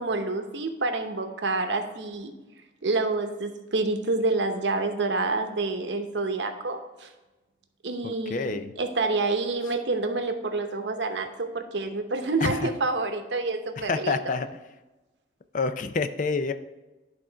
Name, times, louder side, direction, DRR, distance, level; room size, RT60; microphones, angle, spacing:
voice 1, 0.0-2.3 2.8-7.1 7.8-14.4, right 3 dB, 80° right, 6 dB, 0.9 m, -28 dB
voice 2, 8.0-8.7 12.4-12.7 13.8-14.5 15.5-16.5, left 4 dB, 45° left, 10 dB, 0.4 m, -28 dB
11.0 x 3.7 x 4.5 m, 1.1 s
head